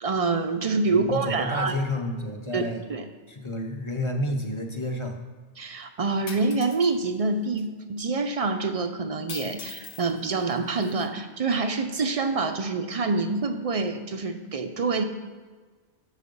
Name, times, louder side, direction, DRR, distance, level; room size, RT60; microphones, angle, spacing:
voice 1, 0.0-1.7 2.5-2.6 2.9-3.1 5.6-15.0, right 3 dB, 50° right, 7 dB, 0.4 m, -26 dB
voice 2, 0.9-2.8 3.3-5.2, left 1 dB, 30° left, 3 dB, 0.7 m, -30 dB
sound 1, 6.3-6.9 7.6-7.7 9.3-11.1, left 6 dB, 65° left, 0.9 m, -42 dB
6.7 x 6.5 x 5.3 m, 1.4 s
omnidirectional pair, 1.1 m